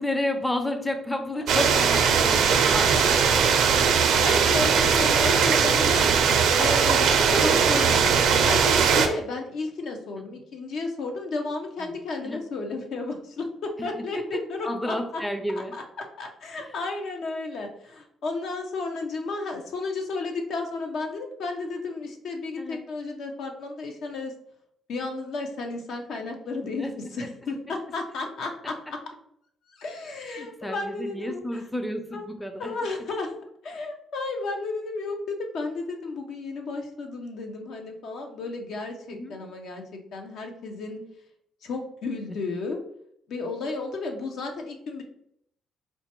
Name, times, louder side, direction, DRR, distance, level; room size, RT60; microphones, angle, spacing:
voice 1, 0.0-2.9 10.2-10.3 11.8-11.9 12.2-12.4 13.9-14.2 14.6-15.7 16.5-16.7 22.6-22.8 26.6-27.1 30.4-32.7 39.1-39.4, left 1 dB, 10° left, 6 dB, 0.4 m, -31 dB
sound 1, 1.5-9.1, right 6 dB, 80° right, 0.4 m, -20 dB
voice 2, 3.7-6.1 6.6-15.2 15.7-24.3 24.9-29.0 29.7-31.6 32.1-32.3 32.6-33.3 33.6-41.0 41.6-42.8 43.3-45.0, left 3 dB, 70° left, 3 dB, 0.6 m, -33 dB
4.3 x 2.2 x 2.9 m, 0.70 s
cardioid pair, 90°, 0 cm